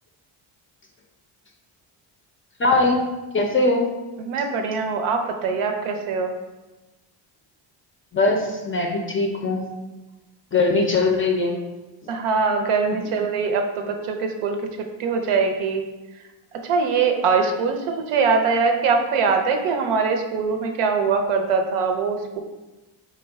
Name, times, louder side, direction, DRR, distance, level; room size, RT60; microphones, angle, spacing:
voice 1, 2.6-3.0 3.3-3.8 8.1-9.7 10.5-11.6 12.9-13.0, left 3 dB, 25° left, 1 dB, 0.4 m, -21 dB
voice 2, 4.2-6.3 12.1-14.6 15.0-15.8 16.7-22.4, right 5 dB, 80° right, 5 dB, 0.6 m, -22 dB
3.8 x 2.2 x 3.4 m, 1.1 s
cardioid pair, 90°, 50 cm